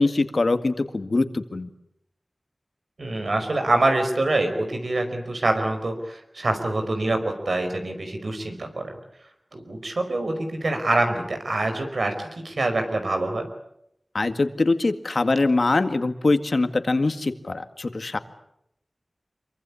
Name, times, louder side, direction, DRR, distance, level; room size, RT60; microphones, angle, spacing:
voice 1, 0.0-1.7 14.1-18.2, left 3 dB, 70° left, 9 dB, 1.9 m, -23 dB
voice 2, 3.0-8.9 9.5-13.5, right 2 dB, 85° right, 5 dB, 5.2 m, -25 dB
26.0 x 23.5 x 8.6 m, 0.79 s
wide cardioid pair, 55°, 0 cm